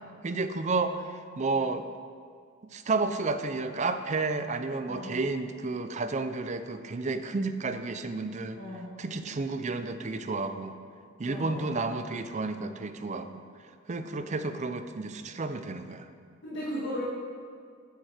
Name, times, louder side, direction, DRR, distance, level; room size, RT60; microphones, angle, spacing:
voice 1, 0.2-1.0 1.4-1.8 2.7-8.6 9.0-10.8 11.2-13.4 13.9-16.1, right 3 dB, 35° right, 9 dB, 0.5 m, -31 dB
voice 2, 4.9-5.2 8.6-8.9 11.3-11.8 16.4-17.0, equal, 55° left, -8 dB, 1.9 m, -36 dB
8.9 x 8.0 x 5.0 m, 2.1 s
head